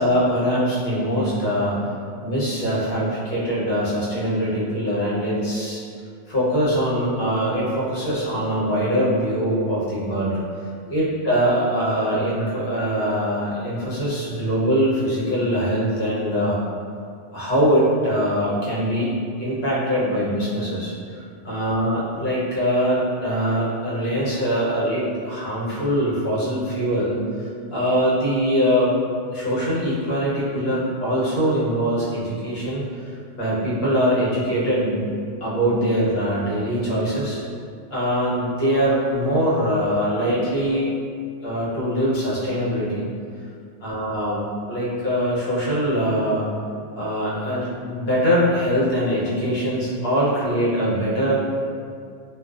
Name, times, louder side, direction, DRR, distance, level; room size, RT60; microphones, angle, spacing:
voice 1, 0.0-1.8 2.2-5.8 6.3-10.4 10.9-16.6 17.3-19.1 19.4-28.9 29.3-32.8 33.4-35.1 35.4-37.4 37.9-40.9 41.4-43.1 43.8-46.5 47.0-51.3, equal, 60° left, -8 dB, 1.0 m, -22 dB
2.4 x 2.2 x 2.3 m, 2.3 s
omnidirectional pair, 1.2 m